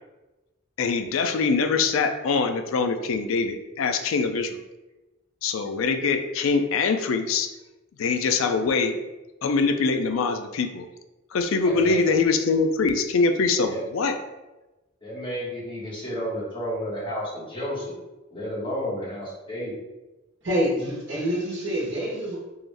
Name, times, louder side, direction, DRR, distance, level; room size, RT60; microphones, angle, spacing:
voice 1, 0.8-4.6 5.4-7.5 8.0-9.0 9.4-10.9 11.3-14.2, left 4 dB, 85° left, 7 dB, 0.4 m, -23 dB
voice 2, 11.6-12.1 13.6-13.8 15.0-17.9 18.3-19.7, equal, 25° left, -8 dB, 1.3 m, -31 dB
voice 3, 20.4-22.4, equal, 60° right, -6 dB, 1.2 m, -26 dB
3.7 x 2.5 x 3.3 m, 1.1 s
head